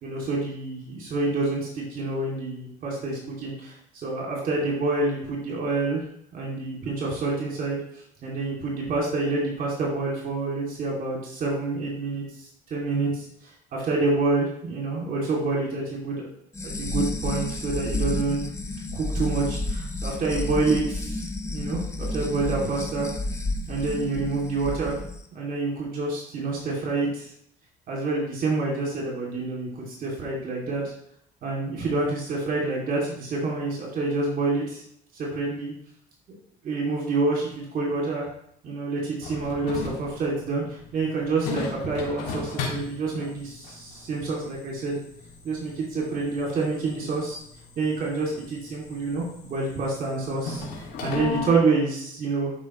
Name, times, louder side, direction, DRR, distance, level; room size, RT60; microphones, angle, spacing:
voice 1, 0.0-6.0 6.3-7.8 8.2-12.2 12.7-13.2 13.7-16.3 16.6-18.4 18.9-21.2 21.5-23.1 23.7-24.9 25.3-27.2 27.9-30.8 31.4-34.8 35.1-35.7 36.6-38.3 38.6-40.6 40.9-45.0 45.4-47.4 47.8-52.5, right 3 dB, 55° right, -3 dB, 2.8 m, -27 dB
sound 1, 16.5-25.2, left 2 dB, 15° left, 0.8 m, -31 dB
sound 2, 39.2-51.5, left 4 dB, 90° left, 2.5 m, -37 dB
11.0 x 5.2 x 3.2 m, 0.68 s
cardioid pair, 110°, 17 cm